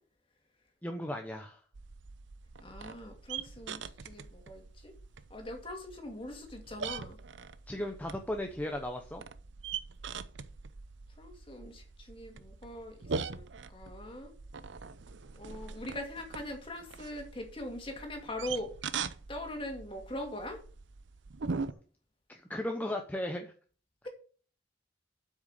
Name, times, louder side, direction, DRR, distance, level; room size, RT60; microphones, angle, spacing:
voice 1, 0.8-1.6 7.7-9.2 21.5-21.8 22.3-23.5, left 1 dB, 10° left, 4 dB, 0.8 m, -36 dB
sound 1, 1.7-21.7, right 5 dB, 75° right, 0.7 m, -42 dB
voice 2, 2.6-4.9 5.3-7.2 11.2-13.5 13.7-14.3 15.4-18.7 19.3-20.6, left 1 dB, 30° left, 4 dB, 2.5 m, -42 dB
8.0 x 6.3 x 6.5 m, 0.41 s
head